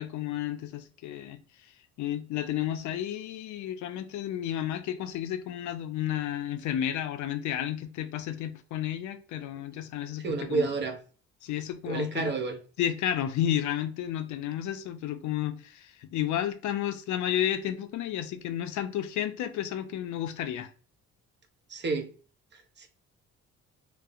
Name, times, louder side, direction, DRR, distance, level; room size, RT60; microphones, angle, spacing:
voice 1, 0.0-1.4 2.0-10.7 11.4-12.3 12.8-20.7, left 11 dB, 70° left, 0.4 m, -32 dB
voice 2, 10.2-11.0 11.9-12.6 21.7-22.1 22.5-22.9, right 4 dB, 35° right, 0.5 m, -30 dB
2.6 x 2.0 x 2.4 m
cardioid pair, 90°, 30 cm